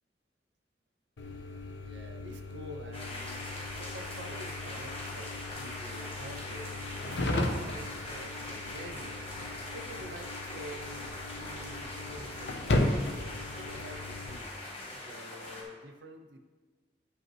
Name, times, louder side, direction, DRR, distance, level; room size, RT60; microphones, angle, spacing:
sound 1, 1.2-14.4, left 1 dB, 80° left, 0.7 m, -36 dB
voice 1, 1.8-9.2 9.7-14.5 15.0-16.4, right 1 dB, 85° right, 6 dB, 0.6 m, -47 dB
sound 2, 2.9-15.6, left 2 dB, 35° left, 1.2 m, -42 dB
sound 3, 7.1-7.4 9.4-9.7, right 1 dB, 20° right, 1.5 m, -56 dB
10.0 x 5.3 x 3.1 m, 1.3 s
head